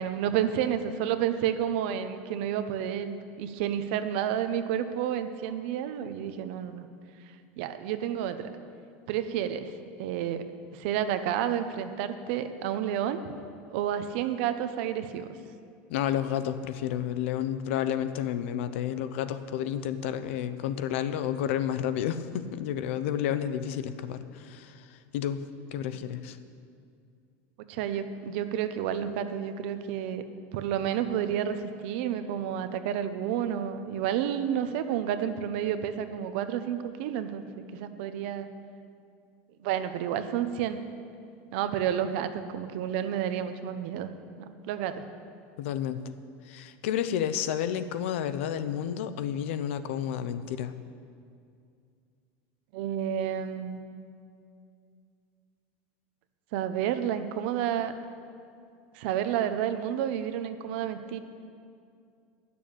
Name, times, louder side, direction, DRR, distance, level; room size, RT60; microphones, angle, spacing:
voice 1, 0.0-6.9 7.3-8.5 9.1-9.7 10.0-13.3 13.7-15.4 27.6-30.2 30.5-37.5 37.7-38.5 39.6-40.8 41.5-44.1 44.4-45.0 52.7-53.8 56.5-57.9 58.9-61.2, right 9 dB, 60° right, 10 dB, 0.7 m, -30 dB
voice 2, 15.9-25.4 25.7-26.4 45.6-46.0 46.5-50.7, left 10 dB, 80° left, 12 dB, 0.7 m, -31 dB
10.5 x 6.9 x 9.0 m, 2.4 s
cardioid pair, 175°, 7 cm